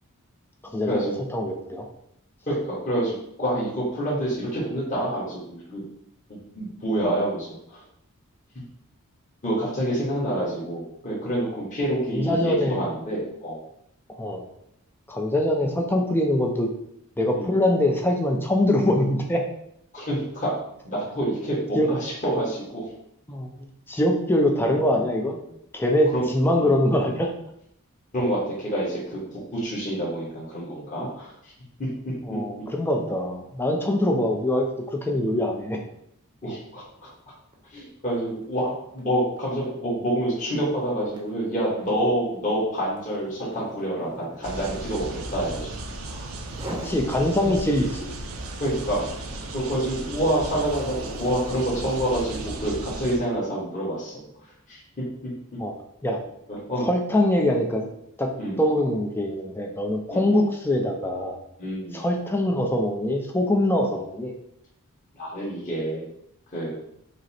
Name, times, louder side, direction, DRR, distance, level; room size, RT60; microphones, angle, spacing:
voice 1, 0.7-1.9 12.1-12.8 14.2-14.4 15.1-16.7 17.2-19.4 21.8-21.9 23.3-23.5 23.9-25.4 25.7-27.3 32.3-35.8 46.7-48.1 55.6-55.7 56.0-56.2 56.8-57.8 58.2-58.3 58.6-61.4 61.9-64.3, left 1 dB, 10° left, 2 dB, 0.4 m, -23 dB
voice 2, 2.5-5.8 6.5-7.8 9.4-13.6 17.3-17.5 19.9-20.5 20.8-22.9 24.6-24.8 26.1-26.2 26.5-26.7 28.1-29.2 29.5-31.5 31.8-31.9 32.3-32.4 33.8-34.0 35.1-35.2 36.4-37.1 37.7-45.7 46.1-46.3 47.3-47.5 48.6-49.0 49.5-54.2 54.7-54.8 56.5-56.9 58.4-58.6 60.1-60.4 61.6-62.0 65.1-66.1 66.5-66.7, right 1 dB, 35° left, -6 dB, 1.3 m, -27 dB
sound 1, 37.0-37.2 37.5-46.0 46.4-47.0 47.5-52.6, right 1 dB, 20° right, 0.7 m, -43 dB
sound 2, 44.4-53.2, right 2 dB, 70° right, 0.6 m, -35 dB
5.1 x 2.0 x 4.2 m, 0.74 s
head